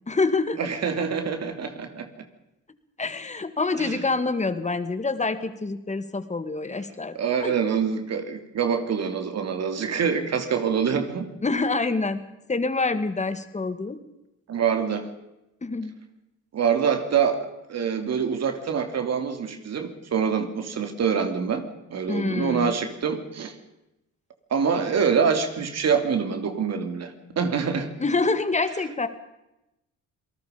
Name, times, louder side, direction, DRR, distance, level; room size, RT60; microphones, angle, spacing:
voice 1, 0.1-0.6 3.0-7.6 11.4-12.2 12.5-14.0 15.6-16.0 22.1-22.7 28.0-29.1, left 3 dB, 25° left, 10 dB, 2.1 m, -26 dB
voice 2, 0.6-2.1 3.8-4.0 7.1-11.3 14.5-15.1 16.5-21.6 21.9-23.5 24.5-27.9, right 6 dB, 60° right, 7 dB, 2.9 m, -25 dB
27.5 x 19.0 x 5.2 m, 0.92 s
cardioid pair, 90°, 30 cm